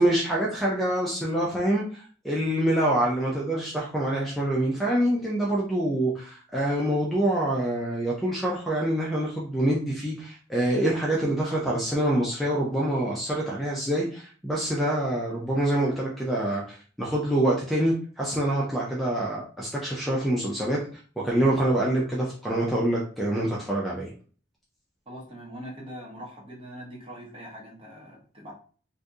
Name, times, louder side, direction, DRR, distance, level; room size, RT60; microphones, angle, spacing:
voice 1, 0.0-20.8 21.2-24.1, right 1 dB, ahead, -4 dB, 0.5 m, -26 dB
voice 2, 25.1-28.5, equal, 30° right, -2 dB, 1.0 m, -42 dB
2.7 x 2.6 x 3.5 m, 0.41 s
head